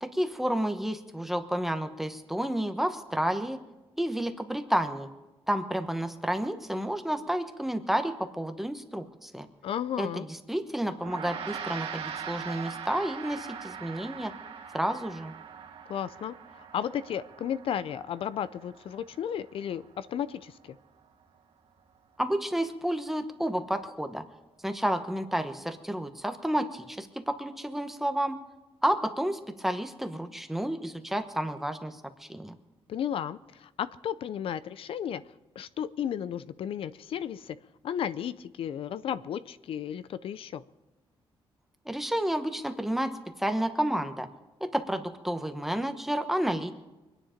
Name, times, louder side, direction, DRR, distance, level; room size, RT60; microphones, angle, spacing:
voice 1, 0.0-3.6 4.0-5.1 5.5-9.5 10.0-14.3 14.7-15.3 22.2-24.2 24.6-28.4 28.8-32.5 41.9-44.3 44.6-46.7, right 1 dB, 5° right, 7 dB, 1.0 m, -30 dB
voice 2, 9.6-10.3 15.9-20.8 32.9-35.2 35.6-37.6 37.8-40.6, left 9 dB, 70° left, 15 dB, 0.5 m, -34 dB
Gong, 11.0-20.6, right 7 dB, 80° right, 1.7 m, -42 dB
24.5 x 10.0 x 5.1 m, 1.1 s
wide cardioid pair, 145°, 10 cm